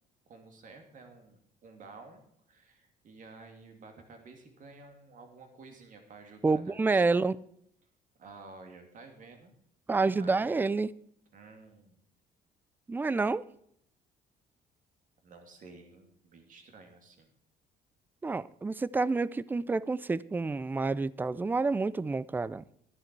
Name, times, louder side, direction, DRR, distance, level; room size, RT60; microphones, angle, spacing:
voice 1, 0.3-7.2 8.2-9.5 10.2-10.6 11.3-12.0 15.2-17.3, right 3 dB, 50° right, 2.5 m, -52 dB
voice 2, 6.4-7.4 9.9-10.9 12.9-13.4 18.2-22.6, right 3 dB, 10° right, 0.3 m, -28 dB
11.5 x 11.0 x 4.6 m
cardioid pair, 110°, 17 cm